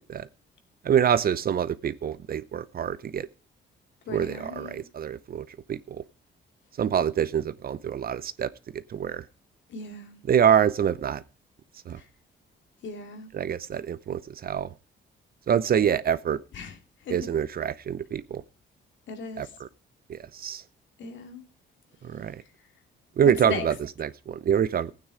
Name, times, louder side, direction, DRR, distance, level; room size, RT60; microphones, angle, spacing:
voice 1, 0.8-3.3 4.1-6.0 6.8-9.3 10.3-11.2 11.9-12.0 13.3-14.7 15.5-16.4 17.1-18.4 19.4-19.7 20.1-20.6 22.0-22.4 23.2-24.9, right 8 dB, 50° right, 0.7 m, -26 dB
voice 2, 4.1-4.8 9.7-10.2 12.0-12.1 12.8-13.3 16.5-16.7 17.1-17.2 19.1-19.5 21.0-21.4 23.2-23.7, left 4 dB, 70° left, 2.6 m, -36 dB
15.0 x 9.3 x 5.0 m
cardioid pair, 90°, 20 cm